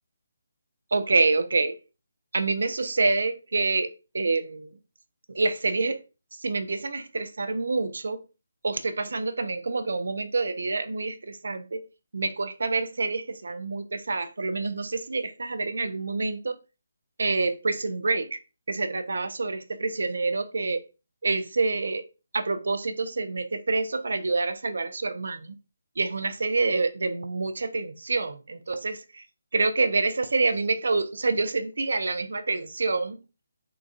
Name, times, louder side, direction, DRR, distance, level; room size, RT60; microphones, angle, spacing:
voice 1, 0.9-1.8 2.3-4.7 5.3-6.0 6.3-8.2 8.6-11.8 12.1-16.6 17.2-18.4 18.7-20.8 21.2-22.0 22.3-25.5 26.0-29.2 29.5-33.2, right 3 dB, 65° right, 0.4 m, -27 dB
3.9 x 2.3 x 2.4 m
figure-of-eight pair, 145°, 0 cm